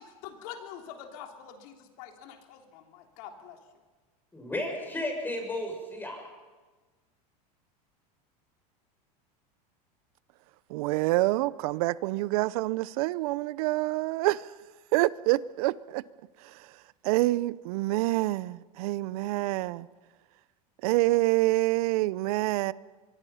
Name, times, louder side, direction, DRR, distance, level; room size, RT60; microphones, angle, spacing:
voice 1, 0.0-3.6, left 8 dB, 65° left, 3.5 m, -45 dB
voice 2, 4.3-6.2, left 1 dB, 10° left, 6.7 m, -33 dB
voice 3, 10.7-14.5 14.9-16.0 16.4-16.7 17.0-19.9 20.8-22.7, right 19 dB, 70° right, 0.7 m, -27 dB
24.0 x 23.5 x 5.7 m
supercardioid pair, 115°, 20 cm